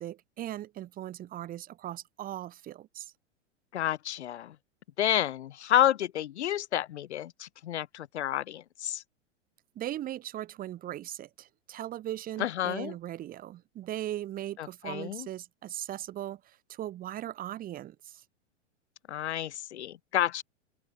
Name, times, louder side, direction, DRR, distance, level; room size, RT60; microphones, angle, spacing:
voice 1, 0.0-3.1 9.7-18.2, right 13 dB, 25° right, 1.3 m, -39 dB
voice 2, 3.7-4.6 5.0-9.0 12.4-12.9 14.6-15.3 19.1-20.4, left 11 dB, 65° left, 0.6 m, -30 dB
figure-of-eight pair, 100°, 36 cm